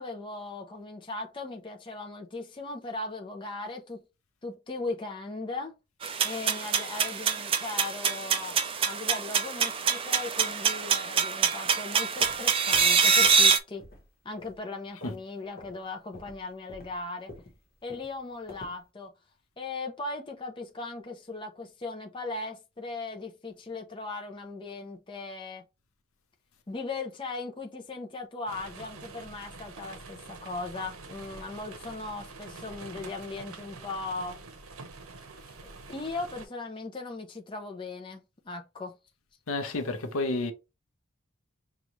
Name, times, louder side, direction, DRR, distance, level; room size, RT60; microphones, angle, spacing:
voice 1, 0.0-4.0 4.4-5.8 6.2-13.9 14.2-17.3 17.8-19.1 19.6-25.6 26.7-34.4 35.9-39.0, left 3 dB, 25° left, 0.5 m, -38 dB
sound 1, 6.0-13.6, right 6 dB, 25° right, 0.3 m, -25 dB
sound 2, 12.0-13.5 13.8-14.1 14.4-15.3 15.6-15.8 16.1-18.8, left 1 dB, 45° left, 1.0 m, -48 dB
sound 3, 28.5-36.5, right 4 dB, 85° right, 0.8 m, -46 dB
voice 2, 39.5-40.5, left 2 dB, 85° left, 0.7 m, -30 dB
5.3 x 2.4 x 3.0 m
head